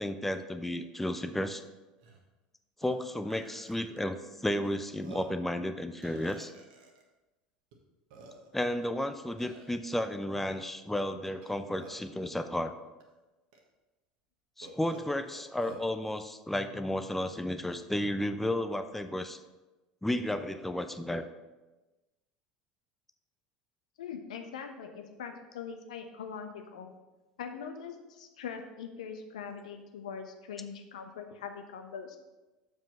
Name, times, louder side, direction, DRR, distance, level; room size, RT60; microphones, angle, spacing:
voice 1, 0.0-1.6 2.8-6.5 8.5-12.7 14.6-19.4 20.0-21.2, left 1 dB, 5° left, 9 dB, 0.6 m, -33 dB
Burping eructation, 1.5-1.6 2.0-2.2 2.8-2.9 3.3-4.0 4.6-4.7 5.0-5.4 6.0-7.0 7.7-7.8 8.1-8.7 9.4-9.7 11.3-12.2 13.0-13.1 13.5-13.6 14.6-15.9, right 2 dB, 60° right, 1.4 m, -49 dB
voice 2, 24.0-26.9 27.4-32.2, left 6 dB, 70° left, 6 dB, 0.9 m, -42 dB
7.2 x 5.4 x 5.5 m, 1.1 s
figure-of-eight pair, 70°, 4 cm